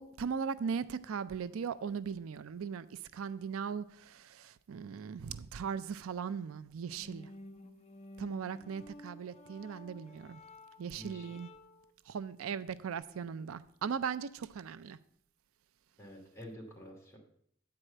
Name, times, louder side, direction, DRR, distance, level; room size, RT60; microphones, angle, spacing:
voice 1, 0.0-7.3 8.2-10.4 10.8-11.5 12.1-15.0, right 6 dB, 80° right, 0.4 m, -38 dB
sound 1, 6.9-11.9, left 1 dB, 30° left, 0.6 m, -53 dB
voice 2, 10.9-11.3 16.0-17.2, equal, 15° left, 2.4 m, -49 dB
8.7 x 4.8 x 7.5 m
head